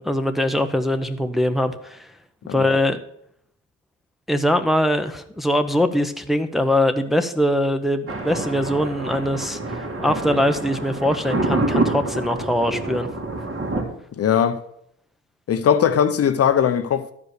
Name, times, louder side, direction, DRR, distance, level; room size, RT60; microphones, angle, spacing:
voice 1, 0.0-2.1 2.5-3.0 4.3-13.1, left 1 dB, ahead, 0.8 m, -22 dB
Thunder, 8.1-13.8, right 2 dB, 45° right, 2.4 m, -27 dB
voice 2, 14.2-14.6 15.5-17.1, left 8 dB, 50° left, 0.7 m, -19 dB
12.0 x 5.0 x 6.5 m
cardioid pair, 90°, 30 cm